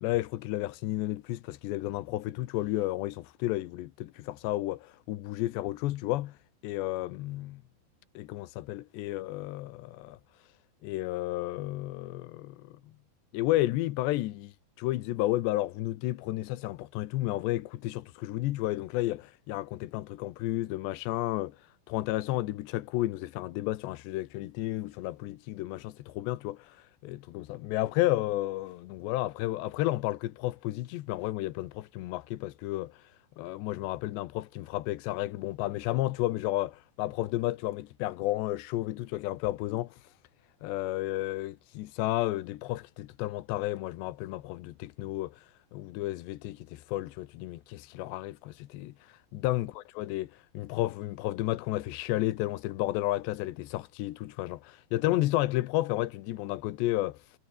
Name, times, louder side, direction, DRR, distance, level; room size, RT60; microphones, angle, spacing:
voice 1, 0.0-6.4 6.6-7.6 8.2-10.2 10.8-12.7 13.3-21.6 21.9-33.0 33.4-40.0 40.6-45.5 45.7-57.2, left 16 dB, 90° left, 3.3 m, -32 dB
omnidirectional pair, 4.9 m